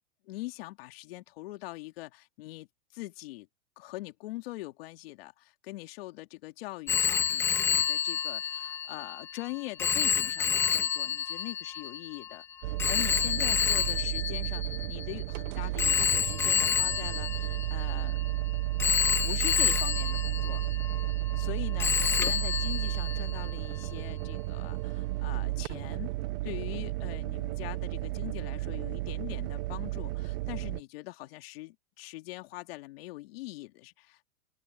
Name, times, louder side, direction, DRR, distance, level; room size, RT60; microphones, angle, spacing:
voice 1, 0.2-2.7 2.9-3.5 3.8-18.2 19.2-20.6 21.4-26.1 26.4-34.3, left 19 dB, 60° left, 2.5 m, -42 dB
Telephone, 6.9-15.2 15.8-18.3 18.8-21.5 21.8-23.5, left 8 dB, 10° left, 0.3 m, -29 dB
sound 1, 12.6-30.8, right 19 dB, 55° right, 0.9 m, -33 dB
open air
supercardioid pair, 140°, 34 cm